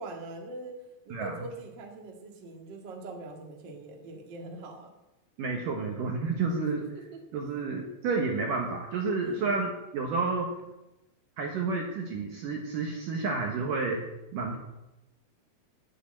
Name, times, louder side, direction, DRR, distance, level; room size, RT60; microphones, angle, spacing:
voice 1, 0.0-4.9 9.2-9.5, right 2 dB, 55° right, 2 dB, 1.2 m, -42 dB
voice 2, 5.4-6.8 7.3-10.5 11.4-14.0 14.3-14.6, right 4 dB, 70° right, 1 dB, 2.1 m, -30 dB
11.0 x 7.6 x 8.8 m, 0.98 s
omnidirectional pair, 5.4 m